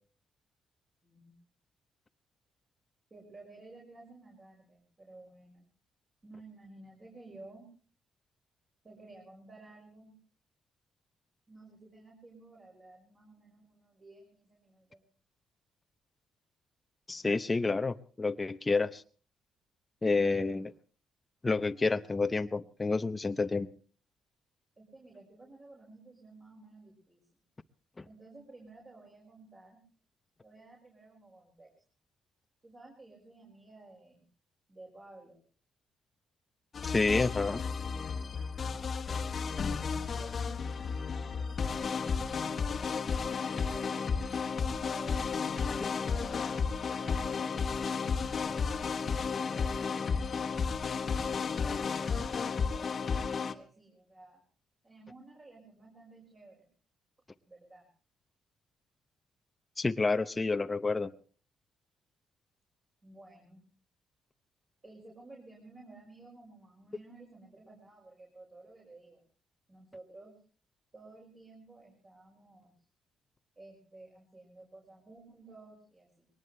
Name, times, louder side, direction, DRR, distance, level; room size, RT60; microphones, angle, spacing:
voice 1, 1.0-1.4 3.1-5.7 6.2-7.7 8.8-10.1 11.5-15.0 24.8-27.3 28.1-29.8 30.4-31.7 32.6-34.2 34.7-35.4 39.0-42.7 43.2-45.2 45.8-46.5 46.9-50.8 51.5-54.4 54.8-56.7 57.5-57.9 63.0-63.6 64.8-69.2 69.7-70.3 70.9-72.7 73.6-76.3, right 2 dB, 30° right, -1 dB, 5.8 m, -54 dB
voice 2, 17.1-19.0 20.0-20.7 21.4-23.7 28.0-28.1 36.9-37.6 59.8-61.1, left 3 dB, 20° left, 8 dB, 0.7 m, -29 dB
sound 1, 36.7-53.5, left 5 dB, 45° left, 1.3 m, -33 dB
21.5 x 19.0 x 3.3 m, 0.40 s
cardioid pair, 90°, 0 cm